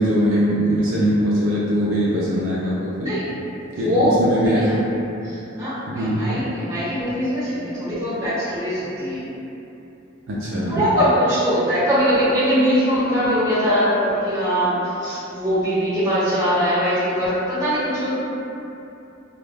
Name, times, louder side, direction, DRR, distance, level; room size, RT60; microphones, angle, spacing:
voice 1, 0.0-3.2 3.8-4.7 5.9-6.3 10.3-10.9, equal, 65° right, -7 dB, 0.4 m, -21 dB
voice 2, 3.7-4.2 4.4-4.6 5.2-9.2 10.7-18.1, equal, 15° right, -15 dB, 1.2 m, -21 dB
2.3 x 2.1 x 3.2 m, 2.9 s
head